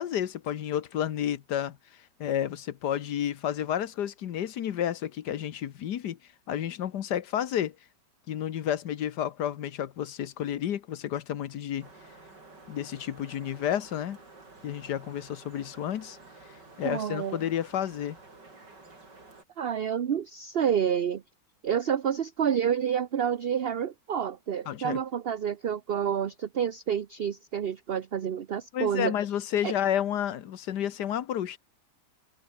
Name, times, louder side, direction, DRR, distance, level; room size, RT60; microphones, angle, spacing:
voice 1, 0.0-1.8 2.2-6.2 6.5-7.7 8.3-11.9 12.7-14.2 14.6-16.2 16.8-18.2 24.7-25.0 28.7-31.6, left 10 dB, 70° left, 1.6 m, -31 dB
sound 1, 11.8-19.4, right 3 dB, 75° right, 5.8 m, -51 dB
voice 2, 16.8-17.4 19.6-21.2 21.6-29.1 29.6-29.7, right 8 dB, 50° right, 0.8 m, -29 dB
omnidirectional pair, 1.9 m